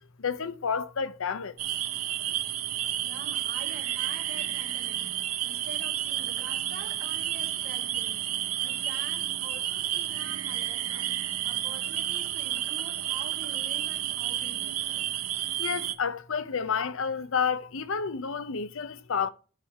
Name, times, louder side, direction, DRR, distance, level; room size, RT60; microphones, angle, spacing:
voice 1, 0.2-1.5 15.6-19.3, left 6 dB, 65° left, 0.6 m, -30 dB
sound 1, 1.6-15.9, right 12 dB, 85° right, 0.8 m, -31 dB
voice 2, 3.0-5.2 5.4-8.3 8.6-14.8, right 3 dB, 45° right, 2.1 m, -46 dB
10.0 x 3.5 x 6.3 m
head